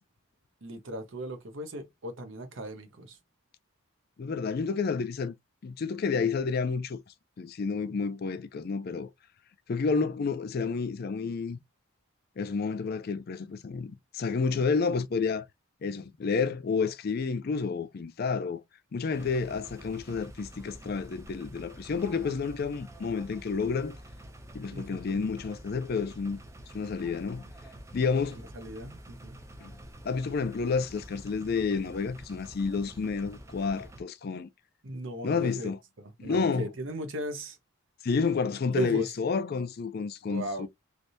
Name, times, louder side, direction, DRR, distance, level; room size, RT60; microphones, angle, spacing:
voice 1, 0.6-3.2 9.8-9.9 24.7-25.2 28.5-29.4 34.8-35.7 36.0-37.6 38.7-39.1 40.3-40.7, right 1 dB, 65° right, 0.8 m, -37 dB
voice 2, 4.2-5.3 5.6-7.0 7.4-9.1 9.7-11.6 12.4-15.5 15.8-18.6 18.9-24.0 24.5-26.4 26.7-27.4 27.9-28.4 29.6-29.7 30.0-34.5 35.2-35.8 36.2-36.7 38.0-40.7, left 5 dB, 50° left, 0.4 m, -30 dB
sound 1, 19.1-34.0, right 1 dB, 15° right, 0.4 m, -48 dB
3.3 x 2.7 x 2.6 m
head